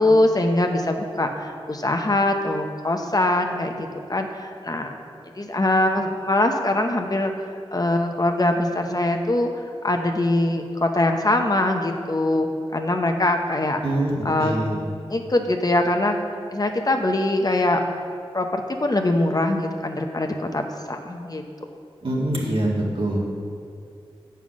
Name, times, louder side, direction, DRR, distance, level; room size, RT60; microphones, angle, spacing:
voice 1, 0.0-4.9 5.4-7.3 7.7-9.5 9.8-13.8 14.2-14.6 15.1-16.2 16.5-17.8 18.3-21.4, left 1 dB, 40° left, 4 dB, 0.8 m, -22 dB
voice 2, 13.8-14.9 22.0-23.3, right 1 dB, 60° right, -4 dB, 2.0 m, -24 dB
8.1 x 5.6 x 6.2 m, 2.3 s
cardioid pair, 50°, 10 cm